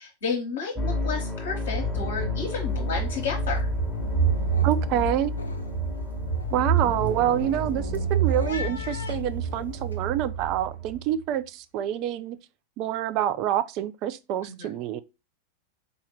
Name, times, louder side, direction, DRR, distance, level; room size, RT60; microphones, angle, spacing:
voice 1, 0.0-3.7 14.4-14.7, left 5 dB, 55° left, 1.0 m, -32 dB
sound 1, 0.7-11.0, left 2 dB, ahead, 1.1 m, -33 dB
sound 2, 1.7-11.1, right 5 dB, 85° right, 1.3 m, -29 dB
sound 3, 2.6-2.9 3.2-3.6 4.0-9.9, left 4 dB, 75° left, 0.5 m, -43 dB
voice 2, 4.6-5.3 6.5-12.4 12.8-15.0, right 11 dB, 40° right, 0.3 m, -27 dB
4.0 x 2.5 x 4.0 m
figure-of-eight pair, 90°, 0 cm